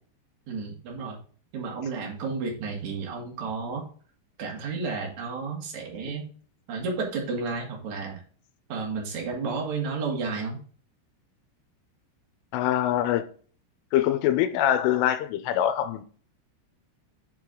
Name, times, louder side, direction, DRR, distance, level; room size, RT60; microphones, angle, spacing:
voice 1, 0.5-1.2 1.5-3.8 4.4-6.3 6.7-8.2 8.7-10.6, right 4 dB, 45° right, 2.8 m, -32 dB
voice 2, 12.5-13.3 13.9-16.0, left 11 dB, 90° left, 3.2 m, -24 dB
7.5 x 4.8 x 3.7 m
omnidirectional pair, 5.7 m